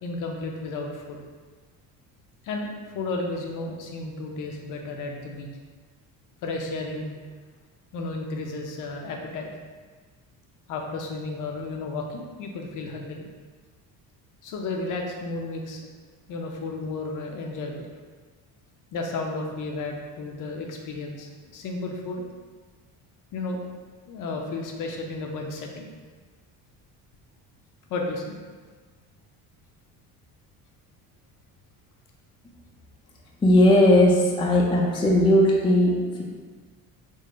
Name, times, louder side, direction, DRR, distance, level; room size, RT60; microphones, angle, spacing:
voice 1, 0.0-1.2 2.4-5.5 6.4-7.1 7.9-9.5 10.7-13.3 14.4-15.8 16.3-17.9 18.9-22.2 23.3-23.7 24.1-25.9 27.9-28.4, left 3 dB, 55° left, 1 dB, 0.6 m, -33 dB
voice 2, 33.4-36.2, left 1 dB, 15° left, -2 dB, 0.4 m, -18 dB
3.9 x 2.1 x 3.6 m, 1.4 s
cardioid pair, 120°, 38 cm